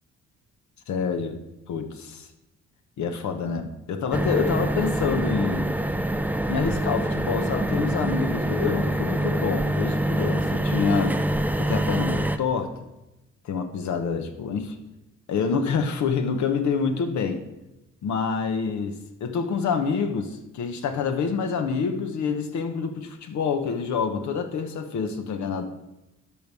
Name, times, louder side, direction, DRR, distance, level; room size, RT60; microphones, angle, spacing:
voice 1, 0.9-1.4 1.7-2.3 3.0-5.7 6.5-11.2 11.6-12.7 13.4-14.8 15.3-17.4 18.0-25.7, left 5 dB, 70° left, 7 dB, 1.1 m, -27 dB
sound 1, 4.1-12.4, right 1 dB, 5° right, 0.5 m, -25 dB
12.0 x 5.5 x 4.7 m, 0.95 s
cardioid pair, 90°, 30 cm